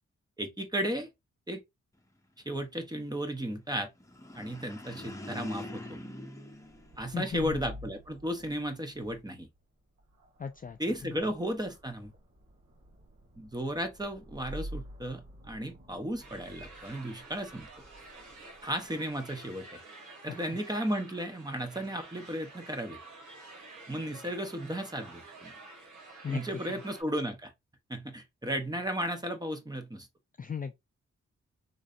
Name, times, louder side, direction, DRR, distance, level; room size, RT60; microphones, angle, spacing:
voice 1, 0.4-1.1 1.5-1.6 2.4-3.9 4.3-6.0 7.0-9.5 10.8-12.1 13.4-17.7 18.6-19.8 20.2-23.0 23.9-25.5 26.3-27.5 27.9-30.1, equal, 15° right, 1.0 m, -34 dB
sound 1, 4.0-7.6, left 1 dB, 10° left, 1.0 m, -44 dB
sound 2, 6.5-19.1, equal, 55° right, 2.2 m, -49 dB
voice 2, 7.1-7.6 10.4-11.1 20.3-20.5 26.2-26.6 30.4-30.8, left 6 dB, 30° left, 0.4 m, -37 dB
sound 3, 16.2-27.0, right 3 dB, 85° right, 1.8 m, -50 dB
3.9 x 3.1 x 2.5 m
wide cardioid pair, 90°, 29 cm